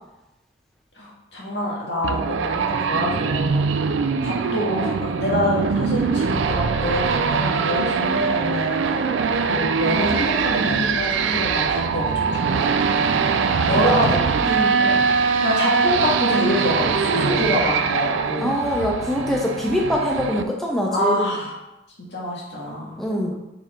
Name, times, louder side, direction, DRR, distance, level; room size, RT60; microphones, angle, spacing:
voice 1, 1.0-9.1 9.4-14.4 14.8-15.0 15.4-18.8 20.9-21.5 22.1-23.0, left 1 dB, 70° left, -4 dB, 1.8 m, -26 dB
sound 1, 2.0-20.4, right 5 dB, 85° right, 0.4 m, -22 dB
voice 2, 13.6-14.8 18.4-21.3 23.0-23.3, equal, ahead, -1 dB, 0.6 m, -24 dB
5.4 x 4.8 x 3.7 m, 0.95 s
head